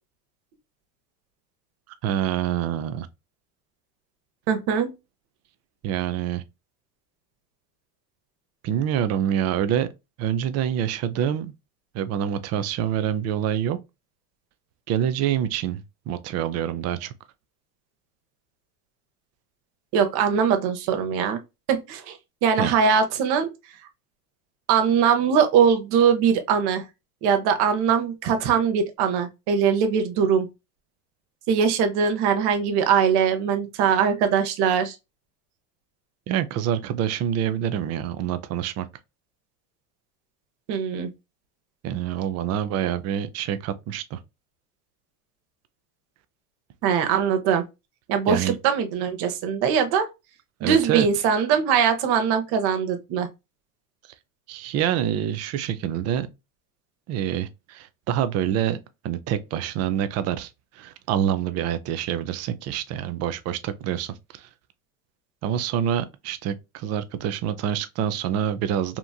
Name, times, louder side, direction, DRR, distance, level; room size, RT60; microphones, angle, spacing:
voice 1, 2.0-3.1 5.8-6.4 8.6-9.9 10.2-11.5 11.9-13.8 14.9-17.1 22.6-22.7 36.3-38.9 41.8-44.2 48.3-48.6 50.6-51.1 54.5-56.3 57.1-58.8 59.0-64.5 65.4-69.0, right 10 dB, 35° right, 0.4 m, -26 dB
voice 2, 4.5-4.9 19.9-21.4 21.7-23.5 24.7-26.8 27.2-30.5 31.5-35.0 40.7-41.1 46.8-47.7 48.1-50.1 50.6-53.3, right 7 dB, 55° right, 0.8 m, -21 dB
2.9 x 2.5 x 2.2 m
supercardioid pair, 100°, 46 cm